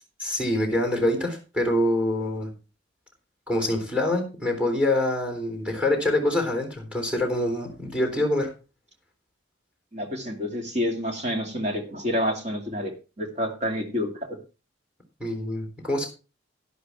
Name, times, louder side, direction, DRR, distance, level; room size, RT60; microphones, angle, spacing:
voice 1, 0.2-2.5 3.5-8.5 15.2-16.1, left 1 dB, 5° right, 3 dB, 3.7 m, -25 dB
voice 2, 9.9-12.9 13.2-14.4, equal, 35° right, 3 dB, 2.3 m, -28 dB
11.5 x 11.0 x 3.6 m, 0.32 s
head